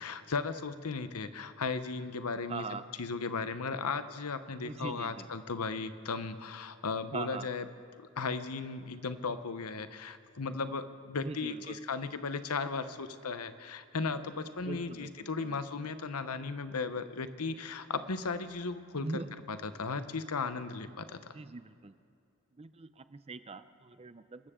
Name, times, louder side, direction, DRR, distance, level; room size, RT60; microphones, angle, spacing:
voice 1, 0.0-2.6 3.0-7.7 8.0-19.2 19.5-21.3, left 4 dB, 90° left, 11 dB, 0.9 m, -36 dB
voice 2, 2.5-2.9 4.6-5.3 7.1-7.5 11.2-11.8 14.6-15.6 19.0-19.4 21.3-21.9 22.6-24.5, right 3 dB, 25° right, 12 dB, 0.5 m, -42 dB
27.5 x 13.5 x 3.7 m, 2.5 s
head